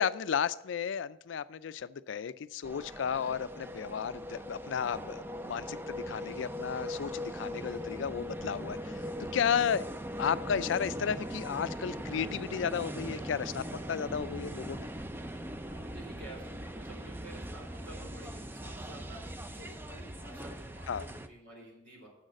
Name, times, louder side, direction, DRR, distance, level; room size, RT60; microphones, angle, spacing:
voice 1, 0.0-9.0 9.3-9.9 10.2-14.9 20.9-21.0, left 7 dB, 75° left, 16 dB, 0.4 m, -33 dB
sound 1, 2.6-21.3, equal, 10° right, 0.4 m, -40 dB
voice 2, 15.5-22.1, right 2 dB, 85° right, -2 dB, 3.9 m, -51 dB
7.2 x 6.4 x 7.6 m, 0.87 s
head